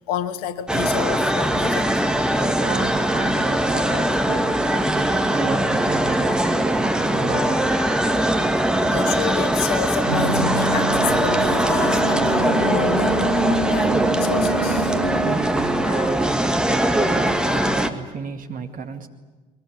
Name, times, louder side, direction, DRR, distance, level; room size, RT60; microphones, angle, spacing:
voice 1, 0.1-2.0 8.9-15.0 15.8-16.1, left 10 dB, 65° left, 13 dB, 1.2 m, -30 dB
sound 1, 0.7-17.9, right 1 dB, 5° right, 1.7 m, -21 dB
voice 2, 2.5-7.7 15.2-19.1, right 5 dB, 40° right, 5 dB, 2.3 m, -32 dB
sound 2, 10.1-15.4, right 3 dB, 90° right, 1.2 m, -25 dB
22.0 x 21.5 x 9.5 m, 1.3 s
figure-of-eight pair, 50°, 21 cm